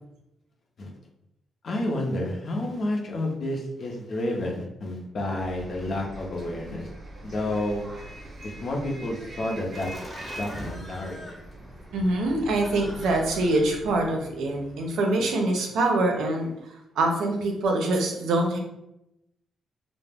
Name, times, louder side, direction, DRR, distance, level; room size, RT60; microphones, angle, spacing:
voice 1, 1.6-6.9 7.2-7.9 8.4-9.9 10.3-11.2, left 1 dB, 50° left, 0 dB, 0.6 m, -30 dB
Bus, 5.4-14.1, right 1 dB, 35° right, 0.7 m, -43 dB
Laughter, 9.7-14.9, equal, 5° left, 0.7 m, -43 dB
voice 2, 11.9-16.5 17.0-18.6, right 2 dB, 85° right, 2 dB, 0.5 m, -24 dB
2.3 x 2.0 x 3.3 m, 0.85 s
cardioid pair, 130°, 0 cm